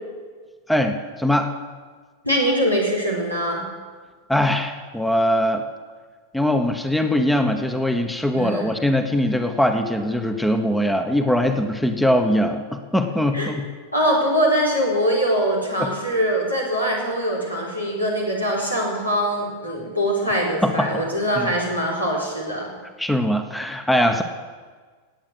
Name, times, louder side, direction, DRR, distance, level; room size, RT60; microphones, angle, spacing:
voice 1, 0.7-1.5 4.3-5.6 6.3-13.7 15.8-15.9 20.6-21.0 21.4-21.5 23.0-24.2, left 1 dB, 5° left, 7 dB, 1.2 m, -21 dB
voice 2, 2.2-3.7 8.3-8.7 13.3-13.5 13.9-22.7, equal, 90° left, -3 dB, 4.4 m, -22 dB
17.5 x 8.9 x 7.9 m, 1.5 s
figure-of-eight pair, 90°, 0 cm